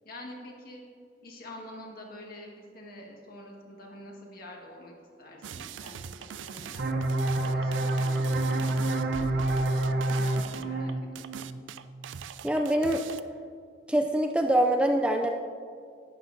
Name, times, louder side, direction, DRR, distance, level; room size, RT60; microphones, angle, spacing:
voice 1, 0.0-0.8 1.2-6.9 7.4-11.3, left 1 dB, 50° left, -1 dB, 1.7 m, -47 dB
sound 1, 5.4-13.2, right 8 dB, 80° right, 0.4 m, -42 dB
sound 2, 6.8-12.2, right 2 dB, 60° right, 0.8 m, -28 dB
voice 2, 12.4-13.0 13.9-15.3, right 1 dB, 5° right, 4 dB, 0.3 m, -24 dB
11.5 x 9.6 x 2.7 m, 2.3 s
head